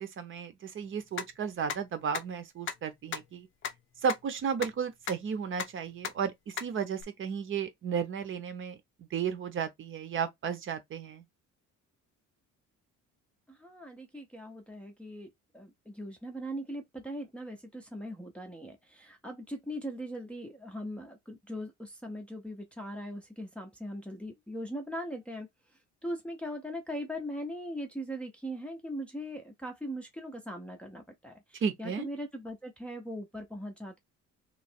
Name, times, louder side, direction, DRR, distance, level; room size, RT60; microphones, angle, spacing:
voice 1, 0.0-3.5 4.0-11.2 31.6-32.1, right 7 dB, 40° right, 0.8 m, -34 dB
sound 1, 1.2-1.3 1.7-1.8 2.1-2.2 2.7-2.8 3.1-3.2 3.6-3.7 4.1-4.2 4.6-4.7 5.1-5.2 5.6-5.7 6.0-6.1 6.6-6.7 7.0-7.1, left 8 dB, 40° left, 0.6 m, -33 dB
voice 2, 13.5-25.5 26.0-34.0, equal, 5° left, 0.7 m, -40 dB
3.2 x 3.0 x 4.3 m
cardioid pair, 175°, 30 cm